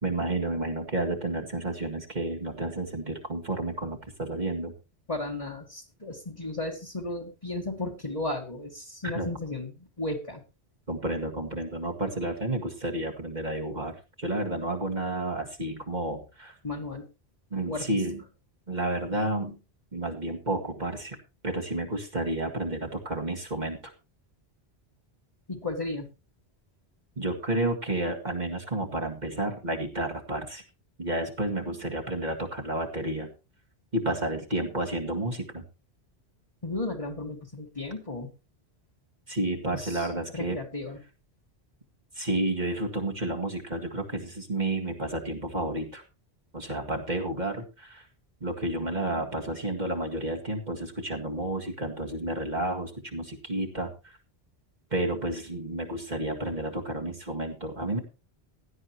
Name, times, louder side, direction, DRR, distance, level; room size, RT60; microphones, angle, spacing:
voice 1, 0.0-4.7 9.0-9.3 10.9-16.5 17.5-18.2 18.7-19.6 19.9-21.2 21.4-23.8 27.2-30.6 31.0-33.3 33.9-35.6 39.3-40.6 42.1-46.0 46.5-48.1 48.4-54.2 54.9-58.0, right 2 dB, 45° right, 1 dB, 2.0 m, -31 dB
voice 2, 5.1-10.4 16.6-17.1 17.7-17.9 25.5-26.1 36.6-38.3 39.7-41.0, left 2 dB, 30° left, -2 dB, 1.9 m, -34 dB
16.5 x 11.0 x 3.0 m, 0.29 s
omnidirectional pair, 1.1 m